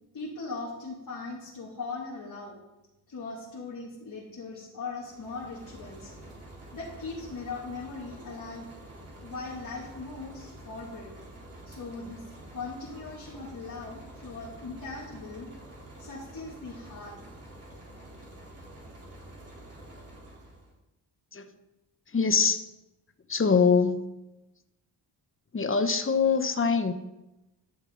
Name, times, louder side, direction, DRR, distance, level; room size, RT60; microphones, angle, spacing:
voice 1, 0.1-2.6 3.1-6.1 6.7-8.7 9.2-11.1 11.6-15.5 16.0-17.1, left 3 dB, 50° left, -5 dB, 2.8 m, -39 dB
sound 1, 4.9-20.7, right 1 dB, 30° right, 3.8 m, -48 dB
voice 2, 22.1-22.7 23.3-24.0 25.5-26.9, left 5 dB, 30° left, 9 dB, 1.1 m, -23 dB
13.0 x 7.2 x 4.0 m, 0.96 s
cardioid pair, 80°, 44 cm